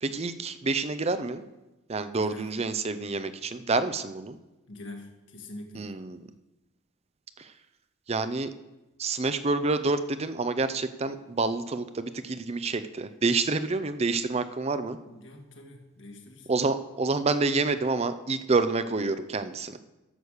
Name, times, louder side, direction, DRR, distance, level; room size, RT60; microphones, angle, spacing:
voice 1, 0.0-1.4 1.9-4.4 5.7-6.2 7.4-7.5 8.1-8.5 9.0-15.0 16.5-19.8, right 3 dB, 35° right, 12 dB, 0.6 m, -28 dB
voice 2, 2.1-2.5 4.7-6.0 15.0-16.5 19.7-19.8, left 1 dB, 70° left, 3 dB, 1.8 m, -44 dB
11.0 x 7.0 x 6.5 m, 1.0 s
head